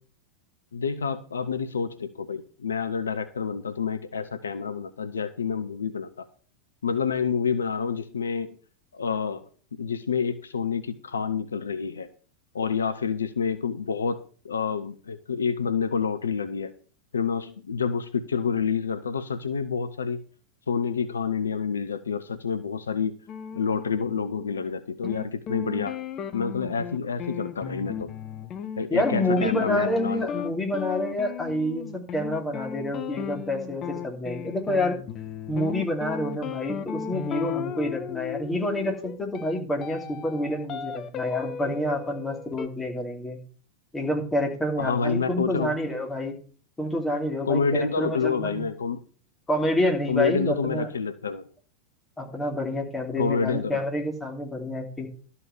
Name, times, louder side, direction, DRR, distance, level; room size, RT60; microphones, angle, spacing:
voice 1, 0.7-6.3 6.8-8.6 8.9-9.5 9.8-12.1 12.5-16.7 17.1-20.2 20.7-23.1 23.5-26.0 26.3-28.1 28.8-30.3 44.8-45.8 47.4-49.0 50.1-51.5 53.2-53.8, left 6 dB, 70° left, 12 dB, 0.7 m, -28 dB
sound 1, 23.3-24.8 25.0-42.7, left 8 dB, 30° left, 0.9 m, -36 dB
voice 2, 28.9-35.0 35.5-43.4 43.9-46.4 46.8-48.7 49.5-50.9 52.2-55.1, left 1 dB, 10° left, 1 dB, 2.8 m, -28 dB
12.5 x 5.7 x 7.0 m, 0.43 s
figure-of-eight pair, 90°, 0 cm